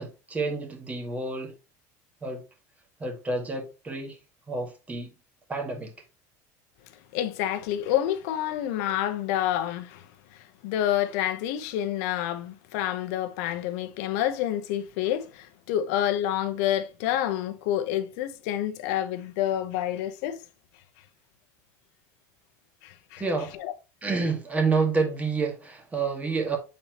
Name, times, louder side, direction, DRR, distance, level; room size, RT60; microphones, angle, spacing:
voice 1, 0.0-1.5 2.2-2.4 3.0-4.2 4.5-5.1 5.5-5.9 23.2-23.5 24.0-26.6, right 4 dB, 15° right, 1.8 m, -28 dB
voice 2, 7.1-20.4 22.8-23.2 23.5-23.7, left 11 dB, 75° left, 0.8 m, -28 dB
7.4 x 4.3 x 3.0 m
supercardioid pair, 125°, 9 cm